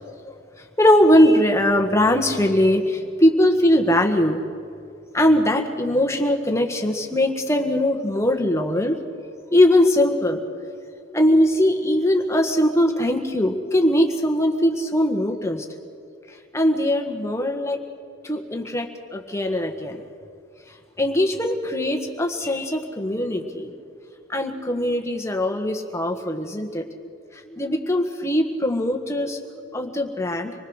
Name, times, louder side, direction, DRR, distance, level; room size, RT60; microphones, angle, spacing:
voice 1, 0.8-4.4 5.1-9.0 9.5-10.4 11.1-15.6 16.5-17.8 18.2-20.0 21.0-23.7 24.3-27.1 27.3-29.4 29.7-30.5, left 1 dB, 15° left, 4 dB, 1.5 m, -20 dB
26.0 x 20.0 x 6.5 m, 2.3 s
head